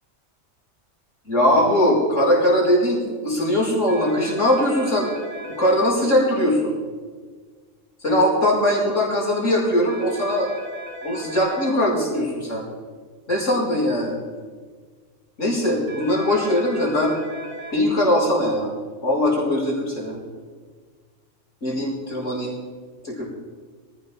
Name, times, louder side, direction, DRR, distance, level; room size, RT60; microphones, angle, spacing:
voice 1, 1.3-5.1 5.6-6.7 8.0-10.5 11.0-12.6 13.3-14.2 15.4-17.1 17.7-18.7 19.0-20.2 21.6-22.5 23.0-23.3, left 1 dB, 80° left, -3 dB, 5.1 m, -20 dB
sound 1, 3.9-5.7 9.9-11.7 15.9-17.7, right 1 dB, 75° right, 3.9 m, -37 dB
24.5 x 16.5 x 2.3 m, 1.5 s
omnidirectional pair, 1.3 m